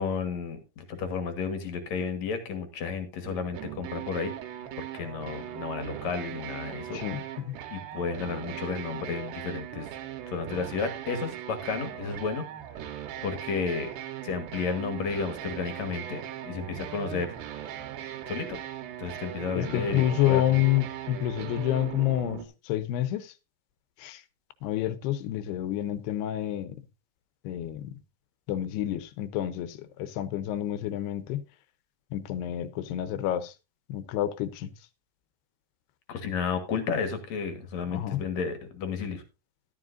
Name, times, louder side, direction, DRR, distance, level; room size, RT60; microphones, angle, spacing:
voice 1, 0.0-4.4 4.8-7.0 7.7-9.9 10.3-12.5 13.2-13.9 14.2-17.4 18.3-18.6 19.0-20.7 36.1-39.2, left 5 dB, 55° left, 2.1 m, -32 dB
sound 1, 3.3-22.5, right 11 dB, 85° right, 3.4 m, -39 dB
voice 2, 6.9-7.6 19.6-22.4 22.7-23.3 24.0-24.2 24.6-26.8 27.4-27.9 28.5-31.4 32.1-33.5 33.9-34.7 37.9-38.2, left 13 dB, 80° left, 2.8 m, -28 dB
12.5 x 12.0 x 2.6 m
omnidirectional pair, 4.7 m